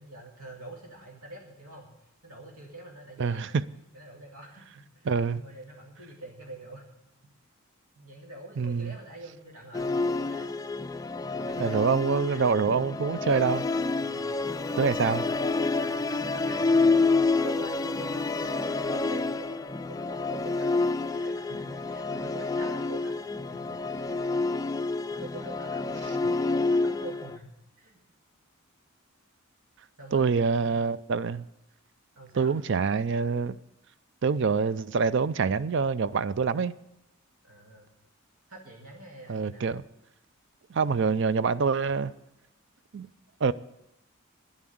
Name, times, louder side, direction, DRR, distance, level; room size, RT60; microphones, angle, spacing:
voice 1, 0.0-1.9 2.2-3.6 3.9-6.8 8.0-10.5 11.3-13.1 14.0-14.3 14.5-14.7 15.0-24.2 25.1-28.0 30.0-30.8 32.1-32.6 37.4-37.9 38.5-39.7, right 1 dB, 90° right, 2.1 m, -46 dB
voice 2, 3.2-3.6 5.1-5.4 8.6-8.9 11.6-13.7 14.8-15.2 30.1-31.4 32.4-33.6 34.2-36.7 39.3-39.8 40.7-42.1 42.9-43.1 43.4-43.5, right 5 dB, 55° right, 0.4 m, -26 dB
Musical instrument, 9.7-27.4, left 3 dB, 15° left, 0.3 m, -28 dB
10.5 x 7.3 x 9.4 m
head